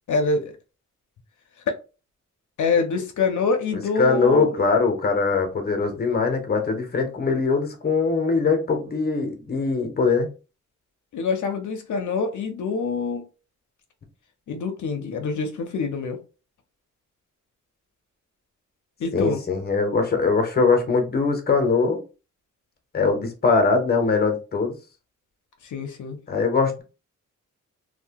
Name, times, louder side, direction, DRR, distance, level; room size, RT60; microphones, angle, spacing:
voice 1, 0.1-0.6 1.7-1.8 2.6-4.5 11.1-13.2 14.5-16.2 19.0-19.4 25.6-26.2, left 4 dB, 70° left, 0.5 m, -25 dB
voice 2, 3.7-10.3 19.1-22.0 22.9-24.8 26.3-26.8, left 4 dB, 30° left, 0.7 m, -22 dB
2.7 x 2.1 x 2.8 m
wide cardioid pair, 145°, 31 cm